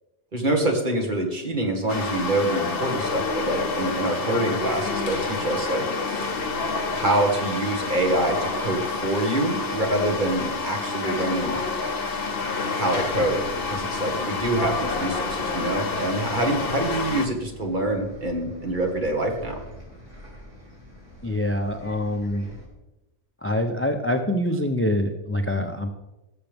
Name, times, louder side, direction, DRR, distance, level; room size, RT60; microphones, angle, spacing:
voice 1, 0.3-5.9 6.9-11.6 12.7-19.6, right 1 dB, 40° right, 2 dB, 1.7 m, -25 dB
sound 1, 1.9-17.3, left 4 dB, 55° left, 1.1 m, -28 dB
Bus, 13.0-22.7, equal, 25° right, 3.7 m, -44 dB
voice 2, 21.2-22.5 23.4-25.9, left 1 dB, 15° left, 6 dB, 0.4 m, -25 dB
18.0 x 6.9 x 3.5 m, 0.96 s
omnidirectional pair, 1.2 m